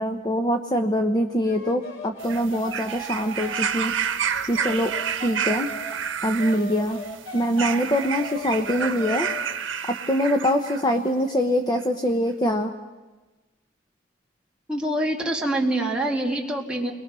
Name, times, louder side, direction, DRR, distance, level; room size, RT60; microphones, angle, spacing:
voice 1, 0.0-3.9 4.5-4.9 5.2-5.7 6.2-7.0 7.3-9.3 9.9-12.7, equal, 20° left, 5 dB, 0.9 m, -24 dB
sound 1, 1.4-6.0 6.4-9.6, left 1 dB, 85° left, 3.5 m, -38 dB
sound 2, 2.2-10.9 11.8-11.9, right 8 dB, 75° right, 1.3 m, -30 dB
voice 2, 14.7-16.9, right 1 dB, 5° right, -2 dB, 2.4 m, -25 dB
30.0 x 21.5 x 6.2 m, 1.2 s
head